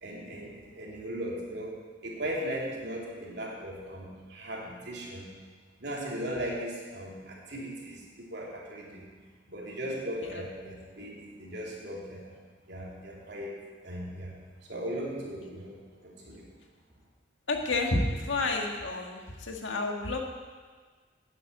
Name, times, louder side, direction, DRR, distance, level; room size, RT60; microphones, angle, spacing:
voice 1, 0.0-5.3 5.8-9.1 9.5-12.3 12.7-13.6 13.8-14.3 14.7-16.5, equal, 65° right, -4 dB, 3.1 m, -38 dB
voice 2, 17.5-20.2, left 2 dB, 85° left, 1 dB, 1.7 m, -30 dB
9.7 x 8.6 x 8.5 m, 1.5 s
head